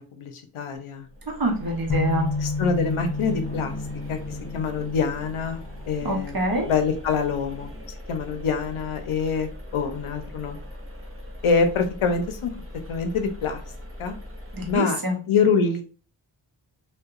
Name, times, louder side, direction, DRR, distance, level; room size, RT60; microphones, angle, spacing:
voice 1, 0.0-1.1 2.4-3.7 4.1-4.2 4.5-5.6 5.9-6.4 6.6-7.7 8.1-10.6 11.4-12.5 12.9-13.6 14.0-14.2 14.7-15.0 15.3-15.8, left 5 dB, 85° left, 6 dB, 0.6 m, -25 dB
sound 1, 1.0-14.8, left 1 dB, 30° right, 0.5 m, -40 dB
voice 2, 1.3-2.3 6.0-6.7 14.5-15.2, right 1 dB, 45° right, 1 dB, 0.8 m, -26 dB
sound 2, 1.9-5.9, left 4 dB, 45° left, 0.8 m, -30 dB
sound 3, 2.7-7.9, left 1 dB, 15° left, 0.9 m, -47 dB
2.7 x 2.2 x 2.4 m, 0.38 s
wide cardioid pair, 90°, 48 cm